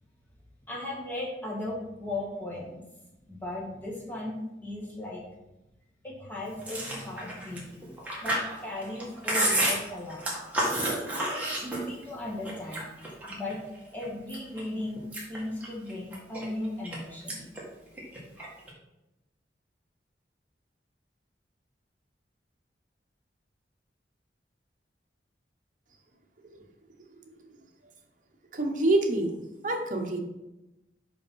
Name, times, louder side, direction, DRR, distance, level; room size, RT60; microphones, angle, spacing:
voice 1, 0.7-2.9 3.3-4.4 4.6-5.2 6.0-7.7 8.2-10.3 11.3-12.8 13.3-13.6 13.9-17.4, left 1 dB, 10° left, -4 dB, 1.9 m, -37 dB
Chewing mastication, 6.6-12.1 12.5-13.5 14.0-14.6 15.0-17.0 17.3-17.6 17.9-18.7, right 1 dB, 10° right, 1.8 m, -30 dB
voice 2, 28.5-29.4 29.6-30.2, right 2 dB, 45° right, 3 dB, 1.0 m, -26 dB
5.5 x 5.2 x 5.6 m, 0.96 s
head